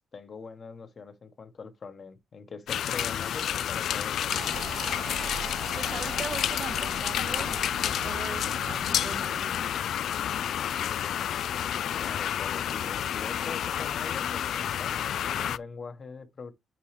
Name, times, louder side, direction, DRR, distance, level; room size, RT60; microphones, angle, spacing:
voice 1, 0.0-4.6 12.0-16.5, left 5 dB, 35° left, 1.1 m, -43 dB
sound 1, 2.7-15.6, left 10 dB, 70° left, 0.3 m, -30 dB
sound 2, 4.3-9.4, right 8 dB, 60° right, 0.4 m, -42 dB
voice 2, 5.8-9.6, right 5 dB, 40° right, 0.8 m, -40 dB
9.0 x 3.8 x 3.3 m
wide cardioid pair, 170°, 0 cm